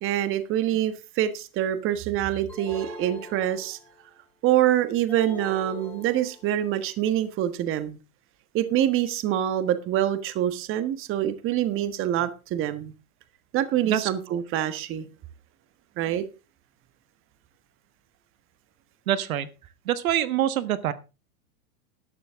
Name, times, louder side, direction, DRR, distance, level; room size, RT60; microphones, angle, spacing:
voice 1, 0.0-3.8 4.4-8.0 8.5-12.9 13.5-15.1 16.0-16.2, right 12 dB, 30° right, 12 dB, 1.4 m, -25 dB
sound 1, 2.5-4.1 5.1-6.7, left 2 dB, 5° left, 4.6 m, -42 dB
voice 2, 13.9-14.4 19.1-19.5 19.8-20.9, right 11 dB, 75° right, 14 dB, 1.4 m, -26 dB
13.0 x 12.0 x 3.6 m, 0.30 s
hypercardioid pair, 135°, 43 cm